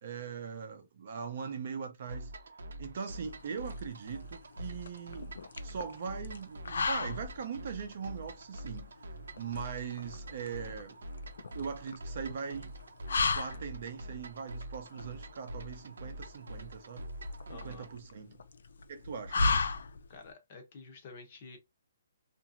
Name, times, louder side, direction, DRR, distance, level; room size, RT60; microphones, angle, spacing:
voice 1, 0.0-2.3 2.8-5.3 5.6-8.9 9.4-11.0 11.5-12.7 13.3-17.1 17.5-18.4 18.9-19.5, right 6 dB, 35° right, 0.5 m, -40 dB
sound 1, 2.1-17.9, equal, 90° right, 0.6 m, -45 dB
sound 2, 3.3-20.3, left 4 dB, 70° left, 0.4 m, -36 dB
voice 2, 17.5-17.9 20.1-21.6, left 4 dB, 25° left, 0.7 m, -49 dB
2.8 x 2.5 x 2.5 m
hypercardioid pair, 180°, 0 cm